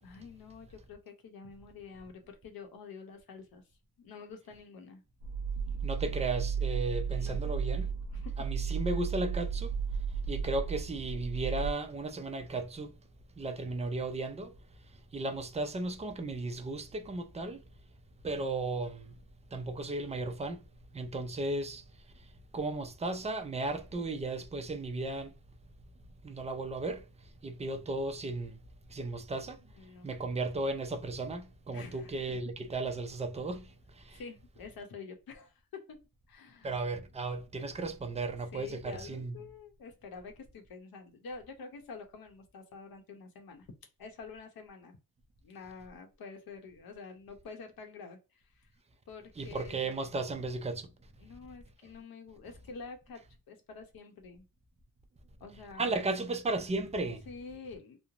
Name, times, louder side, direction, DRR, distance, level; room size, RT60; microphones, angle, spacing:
voice 1, 0.0-3.6 4.0-5.0 5.6-6.2 7.1-7.6 8.1-8.4 29.6-30.1 31.7-32.1 34.1-36.0 36.3-36.7 38.5-43.7 44.0-45.0 45.4-48.7 49.1-50.1 51.2-54.5 55.4-56.1 57.3-58.0, left 5 dB, 65° left, 0.8 m, -48 dB
sound 1, 5.2-11.7, right 6 dB, 70° right, 0.7 m, -34 dB
voice 2, 5.8-7.9 8.4-9.7 10.1-13.0 13.4-14.6 15.1-17.7 18.2-19.2 19.5-20.7 20.9-21.9 22.2-25.4 26.2-28.6 28.9-29.6 30.0-34.2 36.6-39.4 49.4-50.9 55.8-57.3, right 2 dB, 20° right, 0.3 m, -35 dB
3.1 x 2.0 x 2.4 m
wide cardioid pair, 135°, 38 cm